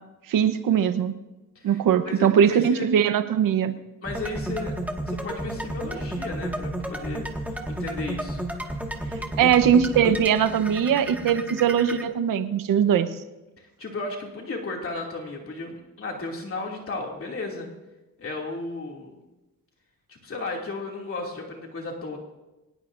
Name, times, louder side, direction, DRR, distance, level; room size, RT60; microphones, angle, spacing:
voice 1, 0.3-1.1 1.6-3.7 9.4-13.1, right 8 dB, 90° right, 9 dB, 1.1 m, -21 dB
voice 2, 1.5-2.9 4.0-4.7 5.1-8.4 9.4-9.5 12.9-13.1 13.6-17.7 18.2-19.1 20.1-22.2, left 3 dB, 45° left, -1 dB, 2.7 m, -34 dB
sound 1, 4.0-12.0, right 1 dB, 5° right, 1.9 m, -32 dB
24.0 x 19.5 x 2.7 m, 1.0 s
cardioid pair, 115°, 32 cm